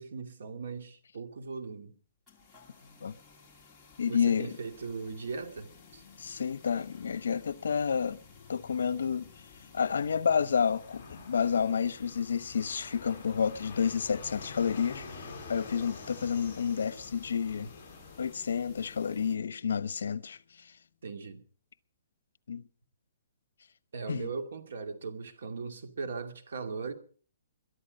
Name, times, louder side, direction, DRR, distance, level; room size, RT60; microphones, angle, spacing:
voice 1, 0.0-1.9 4.1-6.0 21.0-21.4 23.9-26.9, right 4 dB, 70° right, 2.4 m, -39 dB
sound 1, 2.3-19.4, left 4 dB, ahead, 2.7 m, -57 dB
voice 2, 4.0-4.6 6.2-8.2 8.5-9.3 9.7-17.7 18.2-20.4 22.5-22.6 24.1-24.3, left 7 dB, 80° left, 0.8 m, -30 dB
sound 2, 5.6-21.3, left 8 dB, 50° left, 4.3 m, -58 dB
Fixed-wing aircraft airplane, 10.7-18.3, left 3 dB, 20° left, 7.3 m, -47 dB
22.0 x 12.0 x 5.3 m
hypercardioid pair, 180°, 0 cm